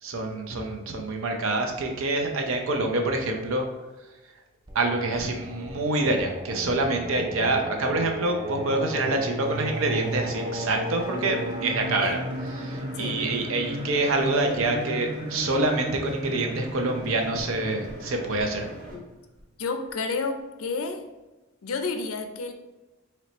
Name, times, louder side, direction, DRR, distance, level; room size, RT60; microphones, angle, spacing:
voice 1, 0.0-3.7 4.7-18.7, right 2 dB, 70° right, 3 dB, 0.6 m, -26 dB
Singing, 4.7-19.4, right 1 dB, 20° right, 0.4 m, -35 dB
sound 1, 9.4-18.9, equal, 40° right, 1.2 m, -43 dB
voice 2, 19.6-21.0 21.6-22.5, left 4 dB, 85° left, 6 dB, 0.5 m, -30 dB
4.2 x 3.1 x 3.0 m, 1.1 s
head